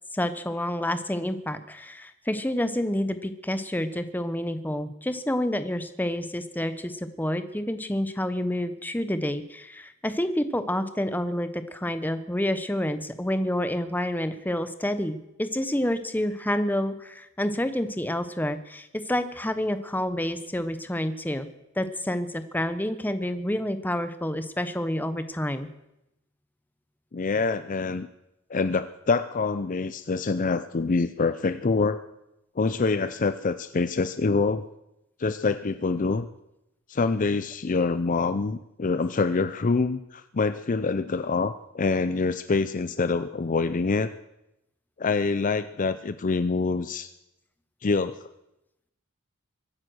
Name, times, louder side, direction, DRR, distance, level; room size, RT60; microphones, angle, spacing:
voice 1, 0.1-21.5 21.8-25.7, left 1 dB, 10° left, 11 dB, 1.0 m, -28 dB
voice 2, 27.1-28.1 28.5-32.0 32.6-34.6 35.2-36.3 36.9-44.1 45.0-47.1 47.8-48.3, left 4 dB, 40° left, 12 dB, 0.5 m, -25 dB
23.5 x 9.8 x 6.3 m, 0.88 s
head